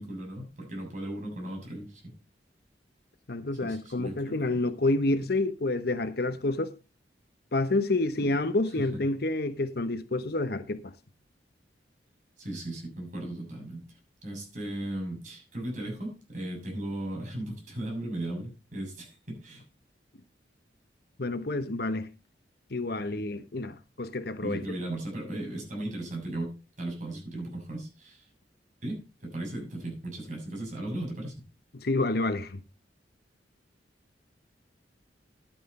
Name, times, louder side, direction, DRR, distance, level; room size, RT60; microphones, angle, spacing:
voice 1, 0.0-2.1 3.6-4.6 8.2-8.4 8.9-9.0 12.4-13.8 14.2-19.6 24.4-26.5 26.8-28.3 28.8-31.4, right 1 dB, 45° right, 6.7 m, -37 dB
voice 2, 3.3-6.7 7.5-10.8 21.2-22.1 22.7-24.8 31.7-32.6, left 2 dB, 60° left, 1.0 m, -28 dB
12.0 x 9.0 x 4.3 m
head